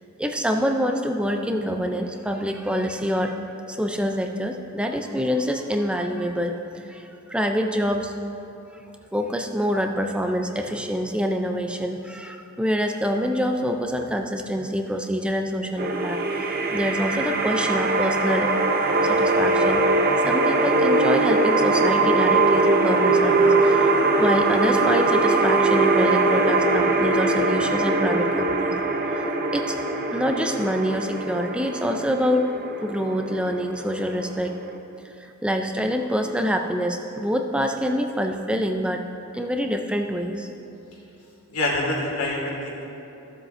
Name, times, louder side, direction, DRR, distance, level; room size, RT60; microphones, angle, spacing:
voice 1, 0.2-3.4 3.7-8.1 9.1-18.5 19.0-19.9 20.2-28.8 29.1-29.8 30.1-32.5 32.8-34.6 35.2-39.1 39.3-40.5, equal, 5° right, 4 dB, 0.4 m, -26 dB
sound 1, 15.8-34.7, right 2 dB, 40° right, 0.6 m, -21 dB
voice 2, 41.5-42.8, left 1 dB, 75° left, -3 dB, 2.1 m, -26 dB
15.5 x 7.5 x 2.6 m, 2.9 s
head